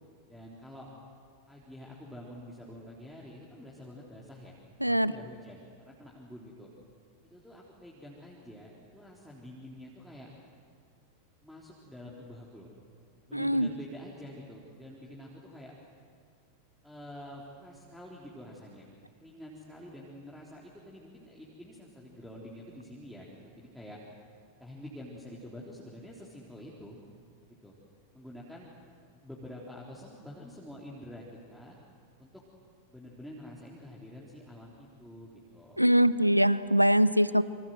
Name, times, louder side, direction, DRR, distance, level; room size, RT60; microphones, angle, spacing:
voice 1, 0.3-0.9 1.5-4.6 4.9-6.7 7.2-10.3 11.4-12.7 13.3-15.7 16.8-18.9 19.2-24.0 24.6-27.0 27.6-27.7 28.1-28.8 29.1-31.8 32.2-32.4 32.9-35.8, equal, ahead, -5 dB, 3.6 m, -47 dB
voice 2, 4.8-5.1 13.3-13.7 35.8-37.4, equal, 90° right, 17 dB, 0.6 m, -23 dB
28.0 x 25.0 x 7.8 m, 2.1 s
figure-of-eight pair, 90°, 0 cm